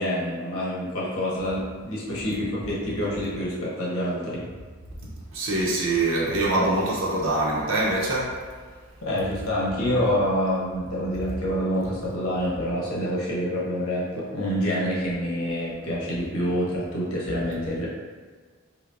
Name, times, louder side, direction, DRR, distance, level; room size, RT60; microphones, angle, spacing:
voice 1, 0.0-4.5 9.0-17.9, equal, 85° left, -6 dB, 1.0 m, -27 dB
voice 2, 5.3-8.4, right 2 dB, 70° right, -4 dB, 0.7 m, -24 dB
5.8 x 2.2 x 2.6 m, 1.5 s
head